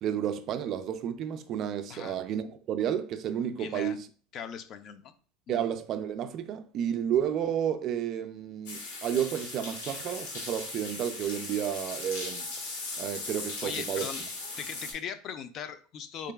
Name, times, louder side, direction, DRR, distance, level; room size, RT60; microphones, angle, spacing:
voice 1, 0.0-4.1 5.5-12.5 13.0-14.1, right 9 dB, 40° right, 0.3 m, -31 dB
voice 2, 3.6-4.0 4.3-5.1 5.5-5.7 13.6-14.2 14.6-16.3, left 7 dB, 40° left, 0.3 m, -39 dB
sound 1, 8.7-14.9, left 3 dB, 85° left, 1.0 m, -38 dB
3.7 x 3.2 x 2.3 m
supercardioid pair, 135°, 0 cm